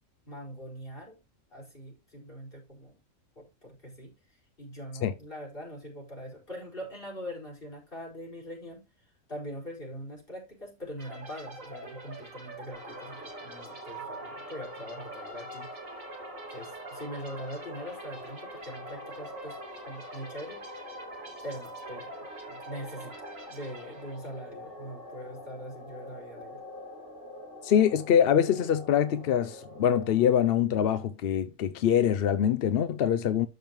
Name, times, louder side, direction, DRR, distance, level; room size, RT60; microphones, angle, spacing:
voice 1, 0.3-1.2 1.5-3.0 3.4-4.1 4.6-8.8 9.3-16.0 16.5-19.6 19.8-20.7 21.4-26.6, equal, 45° left, 5.1 m, -42 dB
sound 1, 11.0-24.5, right 2 dB, 80° right, 2.4 m, -47 dB
sound 2, 12.7-30.5, equal, 65° right, 4.5 m, -45 dB
voice 2, 27.6-33.5, left 9 dB, 60° left, 0.7 m, -24 dB
12.5 x 5.3 x 3.0 m
omnidirectional pair, 1.3 m